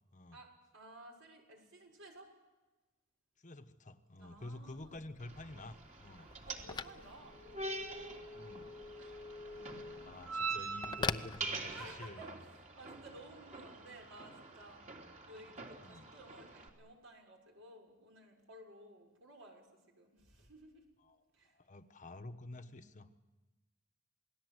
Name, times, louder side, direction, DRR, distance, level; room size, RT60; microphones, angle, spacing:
voice 1, 0.3-2.3 4.2-5.0 6.5-8.4 9.0-9.2 9.5-10.4 11.7-14.8 15.3-20.9 21.3-21.6 22.5-22.7, right 1 dB, 70° right, 1 dB, 6.6 m, -56 dB
voice 2, 3.4-6.3 8.3-8.7 10.0-12.2 15.3-15.5 15.8-16.1 21.0-21.2 21.5-23.1, left 2 dB, 40° left, 8 dB, 1.2 m, -50 dB
Telephone, 4.3-12.1, left 4 dB, 20° left, 0.7 m, -45 dB
sound 1, 5.2-16.7, right 3 dB, 40° right, 3.5 m, -45 dB
28.0 x 20.0 x 8.1 m, 1.1 s
head